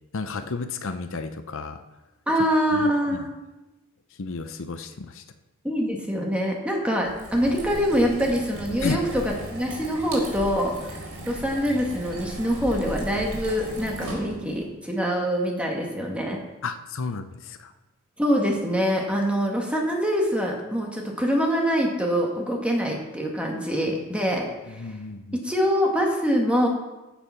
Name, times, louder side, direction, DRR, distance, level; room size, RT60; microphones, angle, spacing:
voice 1, 0.1-1.8 2.7-2.9 4.2-5.2 8.8-9.0 16.6-17.7 24.7-25.4, left 4 dB, 60° left, 9 dB, 0.7 m, -32 dB
voice 2, 2.3-3.3 5.6-16.4 18.2-24.9 25.3-26.7, equal, 5° right, 0 dB, 1.9 m, -25 dB
sound 1, 7.0-14.6, right 1 dB, 90° right, 4.4 m, -36 dB
14.5 x 7.0 x 5.8 m, 1.1 s
head